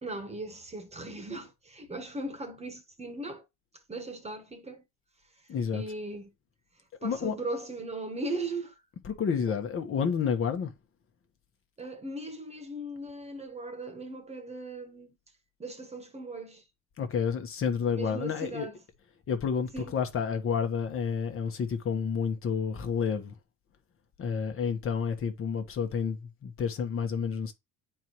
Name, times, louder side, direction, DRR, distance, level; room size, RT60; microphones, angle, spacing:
voice 1, 0.0-3.4 3.9-4.8 5.7-6.3 7.0-8.7 9.5-9.6 11.8-15.1 15.6-16.6 17.9-18.8 19.7-19.9, right 2 dB, 20° right, 1.4 m, -38 dB
voice 2, 5.5-5.8 7.0-7.3 9.0-10.7 17.0-18.7 19.3-23.3 24.2-27.5, left 6 dB, 40° left, 1.3 m, -30 dB
9.3 x 4.7 x 3.1 m
cardioid pair, 135°, 34 cm